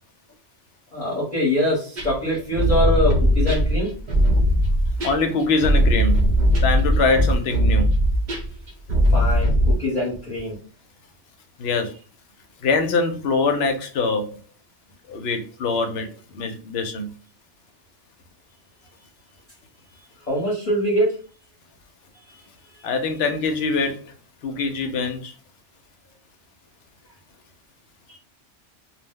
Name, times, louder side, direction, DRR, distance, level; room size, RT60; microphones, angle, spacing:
voice 1, 0.9-3.9 9.1-10.5 20.3-21.1 28.1-28.2, equal, 40° left, -6 dB, 0.9 m, -23 dB
sound 1, 2.0-9.7, equal, 50° right, 0.6 m, -19 dB
voice 2, 5.0-6.2 6.6-7.9 11.6-11.9 12.6-14.3 15.1-17.1 22.8-24.1 24.4-25.3, left 4 dB, 65° left, 6 dB, 0.8 m, -23 dB
2.3 x 2.1 x 3.5 m, 0.37 s
omnidirectional pair, 1.2 m